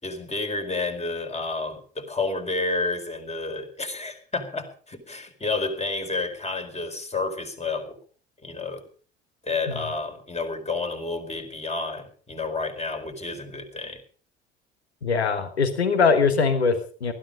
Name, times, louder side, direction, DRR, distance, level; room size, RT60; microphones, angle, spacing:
voice 1, 0.0-8.0 8.4-8.8 9.4-14.0, left 3 dB, 20° left, 6 dB, 4.5 m, -30 dB
voice 2, 15.0-17.1, left 5 dB, 90° left, 10 dB, 1.4 m, -22 dB
20.0 x 13.0 x 5.1 m, 0.42 s
figure-of-eight pair, 55°, 31 cm